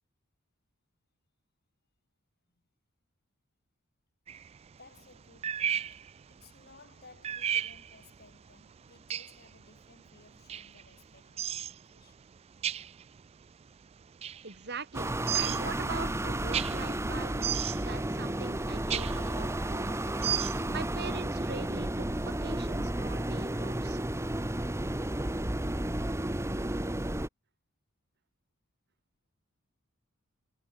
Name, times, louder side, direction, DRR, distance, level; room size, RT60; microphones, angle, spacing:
sound 1, 4.3-20.6, right 10 dB, 30° right, 0.3 m, -34 dB
voice 1, 4.8-12.2, left 3 dB, 50° left, 6.5 m, -59 dB
voice 2, 14.4-20.0 20.7-24.0, right 4 dB, 50° right, 5.1 m, -42 dB
sound 2, 14.9-27.3, right 1 dB, 15° right, 1.1 m, -32 dB
head